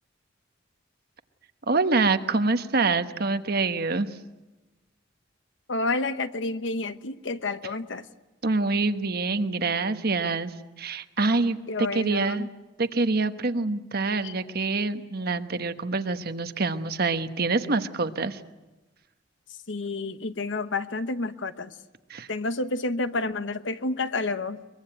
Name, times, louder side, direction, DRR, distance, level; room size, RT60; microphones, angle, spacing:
voice 1, 1.7-4.1 8.4-10.5 10.8-12.5 12.8-18.4 22.1-22.3, right 3 dB, 55° right, 9 dB, 1.2 m, -26 dB
voice 2, 5.7-8.1 11.7-12.5 14.2-14.3 19.7-21.7 22.3-24.6, left 3 dB, 70° left, 11 dB, 1.0 m, -30 dB
23.0 x 22.0 x 9.0 m, 1.1 s
head